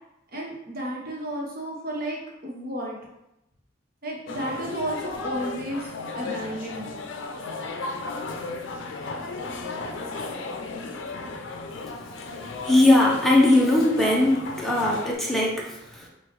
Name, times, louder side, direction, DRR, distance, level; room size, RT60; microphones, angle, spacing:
voice 1, 0.3-3.0 4.0-5.9 6.1-6.9, right 1 dB, 50° right, -3 dB, 1.2 m, -32 dB
sound 1, 4.3-15.1, left 3 dB, 70° left, 0.5 m, -35 dB
voice 2, 12.6-16.1, left 1 dB, ahead, -4 dB, 0.8 m, -20 dB
5.8 x 2.5 x 3.1 m, 0.88 s
head